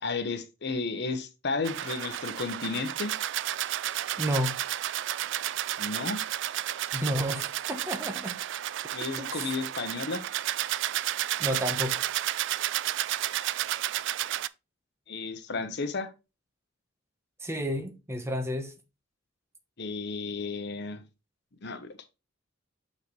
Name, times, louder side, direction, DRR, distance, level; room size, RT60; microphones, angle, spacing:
voice 1, 0.0-3.1 5.8-6.2 8.9-10.3 15.1-16.1 19.8-21.0 21.6-21.9, left 4 dB, 60° left, 1.0 m, -33 dB
sound 1, 1.6-14.5, right 13 dB, 65° right, 0.3 m, -32 dB
voice 2, 4.2-4.6 6.9-8.4 9.2-9.4 11.4-12.0 17.4-18.7, equal, 15° right, 1.0 m, -31 dB
6.8 x 5.5 x 3.2 m
head